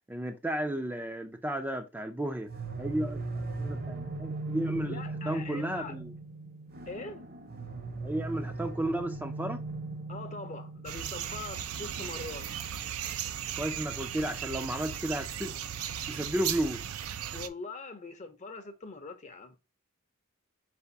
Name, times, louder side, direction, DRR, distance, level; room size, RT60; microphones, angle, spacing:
voice 1, 0.1-2.5 2.8-5.0 5.3-6.1 8.0-9.6 13.6-15.6 16.1-16.8, right 1 dB, 10° right, 0.4 m, -33 dB
sound 1, 2.5-15.3, right 3 dB, 45° right, 0.8 m, -40 dB
voice 2, 4.9-6.0 6.9-7.2 10.1-12.5 17.3-19.6, left 3 dB, 35° left, 0.6 m, -42 dB
sound 2, 10.9-17.5, right 9 dB, 90° right, 0.5 m, -36 dB
4.7 x 3.4 x 2.6 m
head